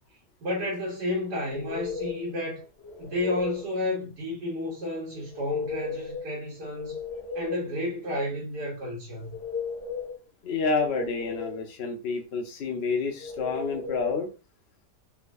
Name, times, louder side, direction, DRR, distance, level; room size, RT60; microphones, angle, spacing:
voice 1, 0.4-2.6 3.0-7.0 7.3-9.3, left 1 dB, 80° right, 1.7 m, -31 dB
sound 1, 1.5-2.3 2.8-3.7 5.3-6.3 6.6-7.7 9.1-10.2 10.6-11.6 13.2-14.2, left 5 dB, 45° left, 1.1 m, -35 dB
voice 2, 10.4-14.3, left 4 dB, 75° left, 0.6 m, -29 dB
3.4 x 3.0 x 2.5 m
omnidirectional pair, 1.7 m